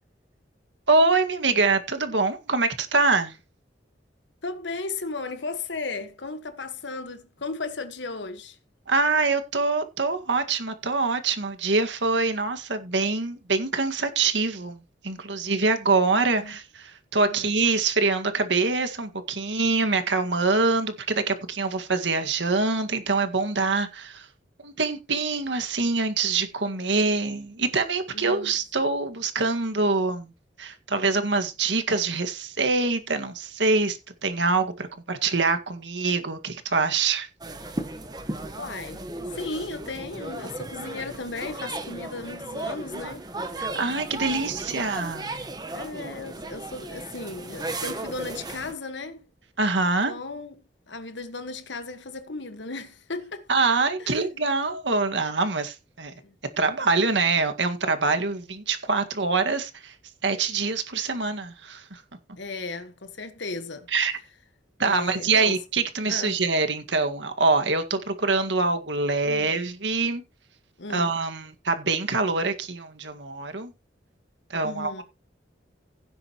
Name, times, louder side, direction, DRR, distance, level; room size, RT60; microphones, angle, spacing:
voice 1, 0.9-3.4 8.9-14.8 15.0-24.3 24.6-30.3 30.6-37.3 43.6-45.5 49.6-50.1 53.5-56.1 56.6-59.9 60.2-62.0 63.9-64.2 64.8-70.2 70.9-73.7 74.5-75.0, right 3 dB, 85° right, 1.9 m, -25 dB
voice 2, 4.4-8.6 16.4-16.5 17.3-17.5 28.1-28.5 38.5-39.0 39.3-43.3 44.1-44.8 45.7-49.2 50.0-53.5 54.0-54.3 56.2-56.3 62.4-63.9 64.8-65.6 66.1-66.4 69.2-69.5 70.8-71.1 74.6-75.0, left 3 dB, 85° left, 1.6 m, -36 dB
sound 1, 37.4-48.7, right 2 dB, 20° right, 1.3 m, -35 dB
16.5 x 7.9 x 3.0 m
head